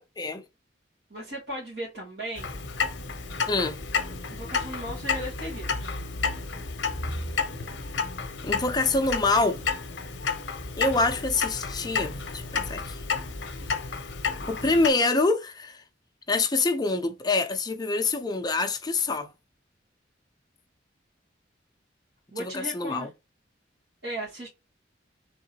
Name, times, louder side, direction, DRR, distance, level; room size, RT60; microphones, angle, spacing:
voice 1, 1.1-2.6 4.3-6.0 22.3-23.1 24.0-24.5, right 1 dB, 70° right, 2.3 m, -36 dB
Clock, 2.3-14.9, left 5 dB, 75° left, 0.7 m, -31 dB
voice 2, 3.5-3.8 8.4-9.6 10.8-13.0 14.5-15.8 16.3-19.3 22.4-23.1, left 3 dB, 20° left, 0.6 m, -26 dB
3.7 x 3.7 x 2.8 m
head